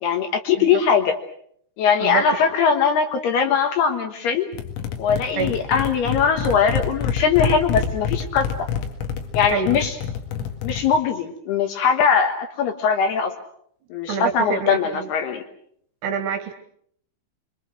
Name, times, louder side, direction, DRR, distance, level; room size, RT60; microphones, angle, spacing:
voice 1, 0.0-1.1 1.8-4.5 5.0-8.5 9.3-10.0 10.6-13.3 13.9-15.4, left 6 dB, 65° left, 6 dB, 2.9 m, -21 dB
sound 1, 4.5-11.0, left 7 dB, 90° left, 4.7 m, -27 dB
voice 2, 9.5-9.8 14.1-15.1 16.0-16.5, right 7 dB, 70° right, 8 dB, 3.1 m, -26 dB
26.5 x 24.0 x 6.4 m, 0.68 s
omnidirectional pair, 5.8 m